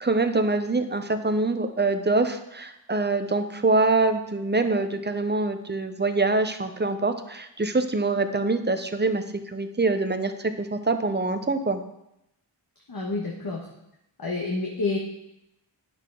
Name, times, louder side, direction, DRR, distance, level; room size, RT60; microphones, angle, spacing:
voice 1, 0.0-10.3 10.6-11.8, right 3 dB, 25° right, 8 dB, 0.8 m, -24 dB
voice 2, 12.9-13.6 14.2-15.0, left 3 dB, 50° left, -1 dB, 1.3 m, -28 dB
9.6 x 6.7 x 3.8 m, 0.85 s
cardioid pair, 60°, 45 cm